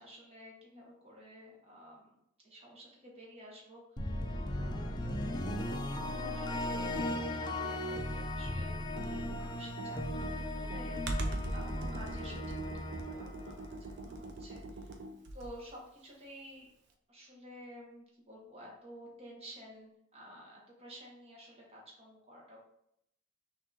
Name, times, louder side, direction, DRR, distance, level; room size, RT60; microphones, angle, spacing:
voice 1, 0.0-2.1 2.4-4.2 4.6-5.0 5.3-12.7 13.0-15.0 15.3-16.7 17.1-22.6, equal, 30° right, -3 dB, 1.1 m, -52 dB
sound 1, 4.0-14.1, left 1 dB, 20° left, 0.4 m, -37 dB
Computer keyboard, 8.8-15.7, right 1 dB, 60° right, 0.5 m, -41 dB
5.7 x 2.6 x 2.8 m, 0.76 s
head